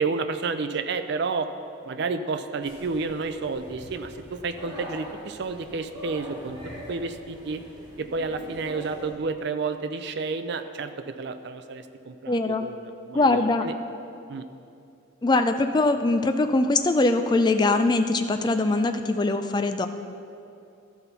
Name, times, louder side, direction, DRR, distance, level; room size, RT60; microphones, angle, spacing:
voice 1, 0.0-1.5 1.8-6.6 6.9-7.6 8.0-13.7 14.3-14.4, right 4 dB, 55° right, 9 dB, 0.4 m, -30 dB
sound 1, 2.6-9.1, equal, 25° right, 2.4 m, -42 dB
voice 2, 12.3-12.6 13.1-13.7 15.2-19.9, left 2 dB, 20° left, 8 dB, 0.3 m, -22 dB
13.0 x 5.7 x 4.0 m, 2.6 s
head